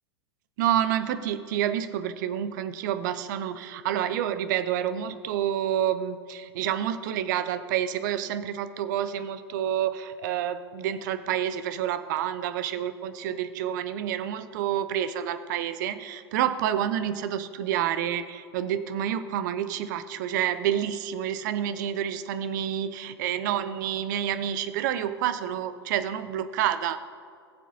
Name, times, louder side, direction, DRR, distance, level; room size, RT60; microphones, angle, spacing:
voice 1, 0.6-27.1, right 10 dB, 45° right, 11 dB, 0.6 m, -28 dB
20.0 x 7.3 x 2.8 m, 2.3 s
figure-of-eight pair, 100°, 14 cm